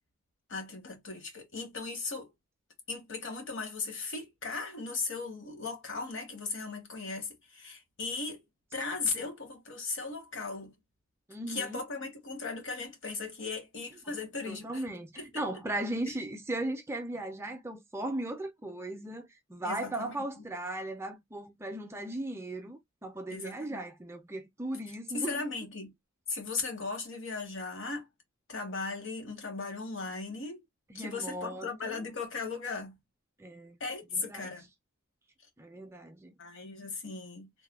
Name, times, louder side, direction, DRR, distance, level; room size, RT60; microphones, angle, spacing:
voice 1, 0.5-2.3 2.9-8.4 8.7-10.7 11.5-14.8 15.2-15.4 16.1-16.2 19.6-20.4 23.3-23.8 25.1-25.9 26.3-28.1 28.5-30.6 30.9-33.0 33.8-34.7 36.4-37.5, left 4 dB, 60° left, 1.0 m, -37 dB
voice 2, 11.3-11.8 14.5-25.4 30.9-32.0 33.4-33.8 34.1-34.5 35.6-36.3, right 1 dB, 10° right, 0.4 m, -37 dB
3.2 x 2.1 x 2.2 m
head